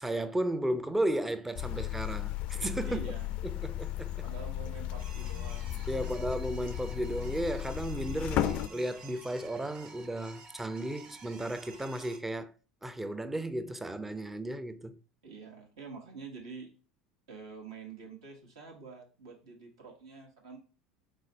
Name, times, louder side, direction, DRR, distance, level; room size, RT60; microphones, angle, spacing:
voice 1, 0.0-3.1 3.4-4.2 5.9-12.5 12.8-15.0, right 1 dB, 10° right, 0.5 m, -34 dB
sound 1, 1.5-8.7, left 13 dB, 50° left, 0.3 m, -35 dB
voice 2, 2.8-3.3 4.2-6.1 15.2-16.7 17.3-20.6, right 5 dB, 70° right, 1.3 m, -47 dB
sound 2, 5.0-12.2, right 4 dB, 40° right, 0.9 m, -52 dB
3.8 x 3.2 x 4.0 m
figure-of-eight pair, 70°, 3 cm